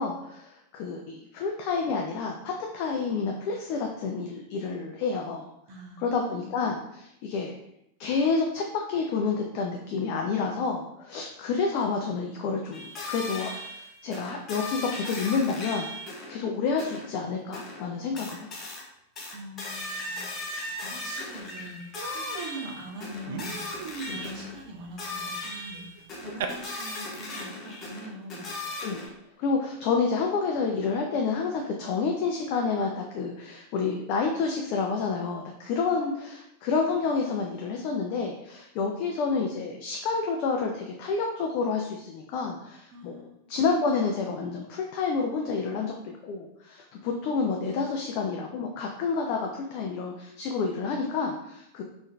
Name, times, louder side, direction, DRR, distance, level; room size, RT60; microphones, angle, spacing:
voice 1, 0.0-5.5 6.0-7.5 8.0-18.7 24.1-24.2 28.8-29.0 29.4-51.8, left 4 dB, 45° left, 1 dB, 0.4 m, -29 dB
voice 2, 5.7-6.6 19.3-23.6 24.1-28.5 42.9-43.5, equal, 40° right, 0 dB, 0.9 m, -43 dB
sound 1, 12.7-16.4 16.8-17.1 17.5-17.8 18.2-18.8 19.2-24.6 25.0-29.1, left 2 dB, 30° left, 0.9 m, -37 dB
Human voice, 20.9-21.0 21.4-21.6 21.9-26.4, right 7 dB, 55° right, 0.3 m, -39 dB
3.7 x 2.6 x 3.1 m, 0.81 s
figure-of-eight pair, 90°, 0 cm